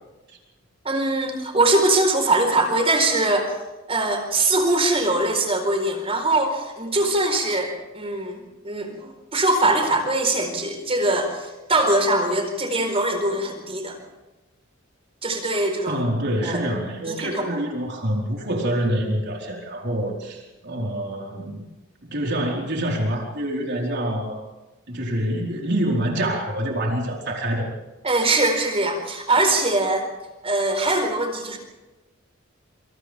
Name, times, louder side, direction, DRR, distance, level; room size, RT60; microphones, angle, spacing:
voice 1, 0.8-3.6 3.9-14.0 15.2-16.0 16.4-16.7 17.0-17.7 28.0-30.1 30.4-31.6, right 2 dB, 30° right, 4 dB, 4.4 m, -22 dB
voice 2, 15.9-21.6 22.0-24.4 24.9-27.7, right 1 dB, 55° right, -1 dB, 4.6 m, -26 dB
27.5 x 27.0 x 3.6 m, 1.1 s
head